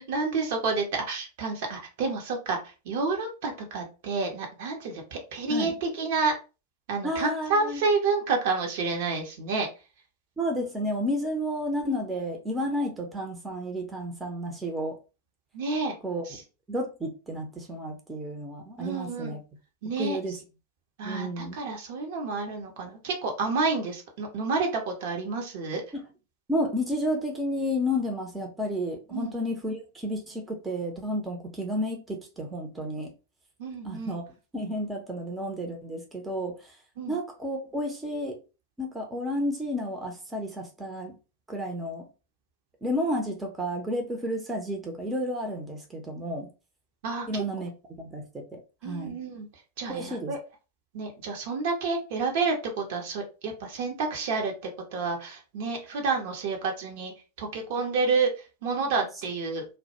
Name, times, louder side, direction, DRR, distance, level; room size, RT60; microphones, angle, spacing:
voice 1, 0.0-6.3 6.9-9.7 15.5-15.9 16.2-16.4 18.8-19.4 19.8-20.4 21.0-25.8 29.1-29.3 33.6-34.1 37.0-37.1 47.0-47.4 48.8-49.5 49.8-50.4 50.9-57.1 57.4-59.7, right 4 dB, 50° right, 0.7 m, -29 dB
voice 2, 7.0-7.8 10.4-15.0 16.0-16.2 16.7-19.4 20.0-20.3 21.0-21.6 25.9-26.0 26.5-33.1 33.8-34.2 34.5-36.8 37.1-38.4 38.8-41.2 41.5-42.1 42.8-46.5 47.3-47.7 48.0-49.2 49.9-50.3, equal, 10° right, 0.6 m, -31 dB
2.2 x 2.1 x 2.9 m
figure-of-eight pair, 90°, 0 cm